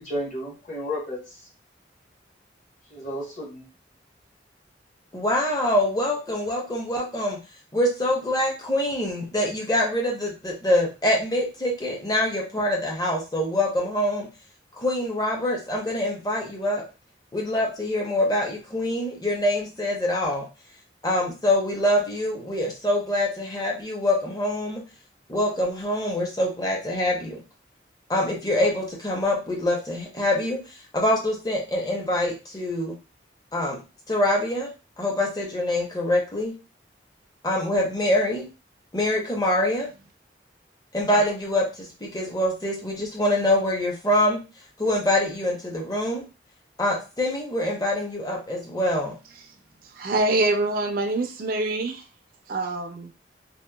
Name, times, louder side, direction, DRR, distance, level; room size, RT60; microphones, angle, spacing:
voice 1, 0.0-1.5 2.9-3.7, equal, 45° left, -4 dB, 1.1 m, -32 dB
voice 2, 5.1-7.4 7.7-14.3 14.8-16.9 17.3-20.5 21.0-24.8 25.3-27.4 28.1-30.6 30.9-32.9 33.5-33.8 34.1-34.7 35.0-36.5 37.4-38.5 38.9-39.9 40.9-44.4 44.8-46.2 46.8-49.2, left 1 dB, 20° left, -1 dB, 0.6 m, -25 dB
voice 3, 49.9-52.0 52.5-53.1, right 2 dB, 50° right, 5 dB, 0.4 m, -25 dB
2.8 x 2.1 x 2.2 m, 0.30 s
head